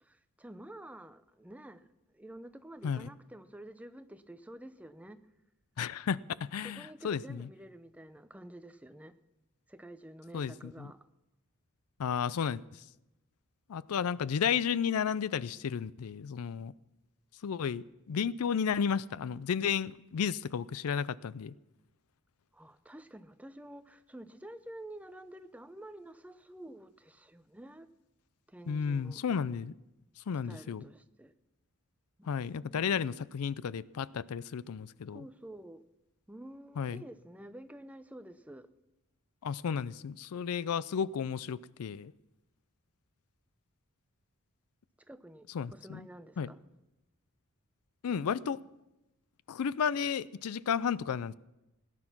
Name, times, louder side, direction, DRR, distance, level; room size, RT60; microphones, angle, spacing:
voice 1, 0.0-5.2 6.6-9.2 9.7-11.0 22.5-27.9 28.5-29.2 30.4-31.3 32.2-33.0 35.1-35.8 36.3-38.7 45.1-46.6, right 1 dB, 5° right, 0.5 m, -49 dB
voice 2, 5.8-7.5 10.3-10.9 12.0-12.8 13.7-16.7 17.4-21.5 28.7-29.7 30.3-30.8 32.2-35.2 36.8-37.0 39.4-42.1 45.5-46.1 46.4-46.5 48.0-48.6 49.5-51.3, left 7 dB, 80° left, 0.4 m, -33 dB
18.0 x 10.0 x 6.0 m
head